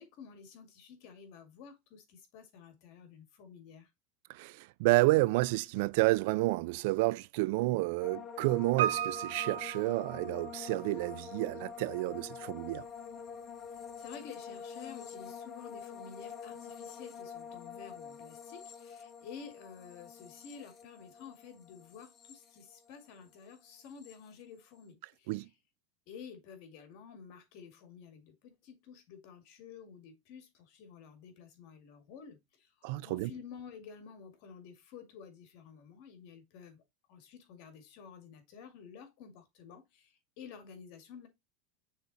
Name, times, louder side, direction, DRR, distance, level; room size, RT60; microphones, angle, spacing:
voice 1, 0.0-3.9 14.0-25.5 26.1-36.8 37.1-41.3, left 6 dB, 55° left, 2.1 m, -51 dB
voice 2, 4.3-12.9 25.3-25.5 32.8-33.3, right 20 dB, 65° right, 0.4 m, -30 dB
sound 1, 8.0-23.2 23.5-24.1, left 7 dB, 30° left, 0.8 m, -47 dB
Piano, 8.8-10.8 11.1-11.2, right 11 dB, 85° right, 0.8 m, -35 dB
6.4 x 3.6 x 4.1 m
supercardioid pair, 140°, 0 cm